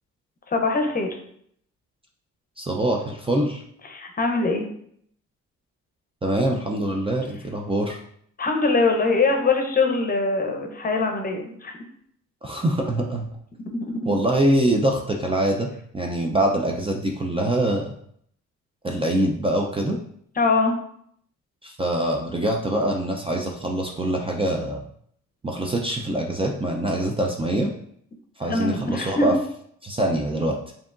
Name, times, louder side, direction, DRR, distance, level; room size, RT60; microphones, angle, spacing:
voice 1, 0.5-1.1 3.9-4.7 8.4-11.8 13.7-14.1 20.4-20.7 28.5-29.3, left 3 dB, 30° left, 3 dB, 0.7 m, -23 dB
voice 2, 2.6-3.6 6.2-8.0 12.4-13.3 14.1-15.7 15.9-17.9 18.8-20.0 21.6-24.8 25.4-27.7 28.4-29.3 29.8-30.6, right 1 dB, 20° right, 1 dB, 0.4 m, -24 dB
4.8 x 2.8 x 2.5 m, 0.66 s
cardioid pair, 90°, 30 cm